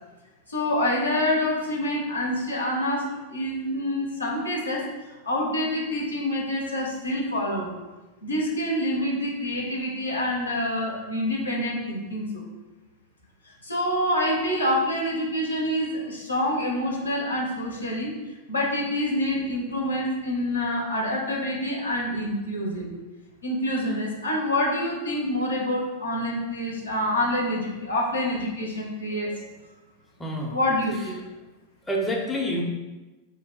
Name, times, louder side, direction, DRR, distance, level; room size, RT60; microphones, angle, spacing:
voice 1, 0.5-4.9 5.2-7.7 8.2-12.4 13.6-18.1 18.5-22.9 23.4-29.3 30.5-31.2, left 1 dB, 75° left, -2 dB, 0.6 m, -27 dB
voice 2, 29.1-29.5 30.2-30.6 31.9-32.6, equal, 10° left, -1 dB, 0.5 m, -28 dB
2.6 x 2.2 x 3.8 m, 1.1 s
figure-of-eight pair, 90°, 0 cm